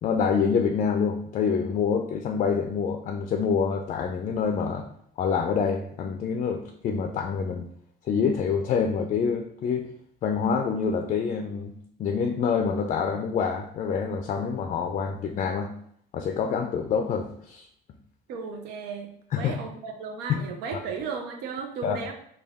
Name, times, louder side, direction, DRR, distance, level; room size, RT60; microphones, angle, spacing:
voice 1, 0.0-4.8 5.2-7.7 8.1-9.9 10.2-11.7 12.0-15.7 16.1-17.7 19.3-19.5 20.3-20.4 21.8-22.0, left 6 dB, 45° left, 5 dB, 0.4 m, -26 dB
voice 2, 18.3-19.1 19.4-22.1, right 5 dB, 90° right, 3 dB, 0.6 m, -35 dB
3.4 x 2.3 x 3.5 m, 0.68 s
cardioid pair, 110°, 17 cm